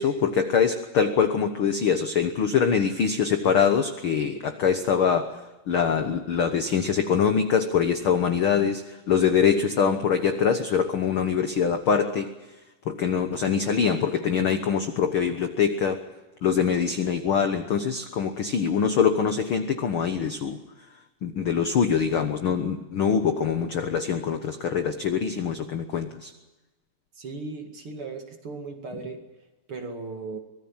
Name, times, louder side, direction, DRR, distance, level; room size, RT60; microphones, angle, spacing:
voice 1, 0.0-5.4 5.7-12.3 12.8-16.0 16.4-20.6 21.2-26.3, left 7 dB, 60° left, 7 dB, 1.4 m, -24 dB
voice 2, 27.2-29.2 29.7-30.4, right 3 dB, 45° right, 4 dB, 2.8 m, -37 dB
25.0 x 19.0 x 7.3 m, 1.1 s
omnidirectional pair, 3.9 m